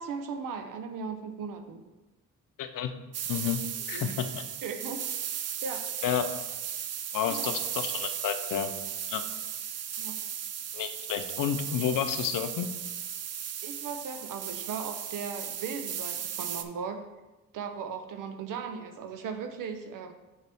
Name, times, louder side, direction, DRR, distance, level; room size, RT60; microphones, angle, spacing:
voice 1, 0.0-1.9 3.9-4.2 4.6-5.0 5.6-5.8 7.3-7.5 10.0-10.2 13.6-17.1 17.5-20.1, right 6 dB, 85° right, 6 dB, 0.7 m, -37 dB
voice 2, 2.6-2.9 3.3-3.6 3.9-4.4 6.0-6.2 7.1-8.7 9.1-9.2 10.7-12.7, left 9 dB, 85° left, 9 dB, 0.6 m, -30 dB
sound 1, 3.1-16.6, right 9 dB, 55° right, 0.5 m, -36 dB
6.6 x 4.8 x 3.5 m, 1.1 s
cardioid pair, 70°, 31 cm